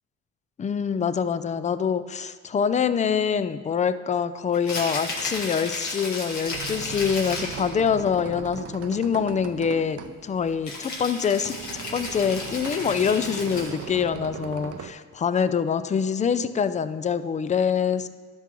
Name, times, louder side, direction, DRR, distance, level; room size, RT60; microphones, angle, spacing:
voice 1, 0.6-18.1, left 7 dB, 25° left, 13 dB, 0.3 m, -25 dB
Rattle (instrument), 4.5-7.7 10.6-13.9, left 2 dB, 70° left, 2.0 m, -34 dB
sound 1, 6.3-14.9, right 9 dB, 50° right, 0.5 m, -39 dB
12.0 x 6.0 x 3.0 m, 1.5 s
cardioid pair, 90°, 30 cm